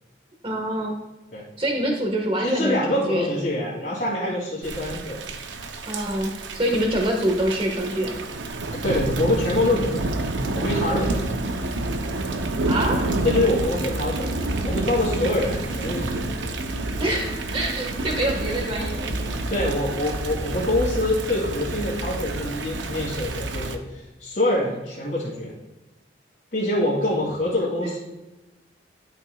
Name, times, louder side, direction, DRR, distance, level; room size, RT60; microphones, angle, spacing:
voice 1, 0.4-1.0 1.6-3.3 5.8-8.2 12.6-13.1 17.0-19.4 27.8-27.9, right 1 dB, 30° right, 1 dB, 1.4 m, -26 dB
voice 2, 2.4-5.2 8.7-10.1 10.5-11.3 13.2-14.3 14.6-16.3 19.5-25.5 26.5-28.0, left 1 dB, 50° left, -9 dB, 2.3 m, -25 dB
Thunder / Rain, 4.6-23.8, right 2 dB, 80° right, 0.6 m, -28 dB
11.5 x 5.8 x 2.3 m, 1.1 s
head